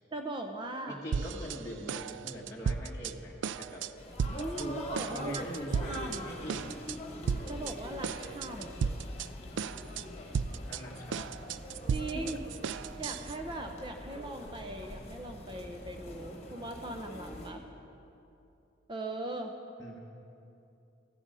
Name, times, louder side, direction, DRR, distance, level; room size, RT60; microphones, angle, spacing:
voice 1, 0.1-1.0 4.3-5.5 5.9-6.4 7.5-8.9 11.9-12.4 13.0-17.6 18.9-19.5, right 2 dB, 25° right, 4 dB, 0.6 m, -39 dB
voice 2, 0.9-3.8 4.6-4.8 5.1-6.8 10.5-11.4 12.1-12.3 19.8-20.0, equal, 15° left, -5 dB, 1.1 m, -43 dB
sound 1, 1.1-1.6 1.9-3.1 3.4-3.9 4.2-4.7 5.0-6.2 6.5-7.0 7.3-7.7 8.0-9.3 9.6-10.0 10.3-13.4, right 6 dB, 70° right, 0.3 m, -34 dB
sound 2, 4.0-17.5, left 1 dB, 35° left, 1.3 m, -44 dB
14.0 x 9.9 x 5.5 m, 2.7 s
head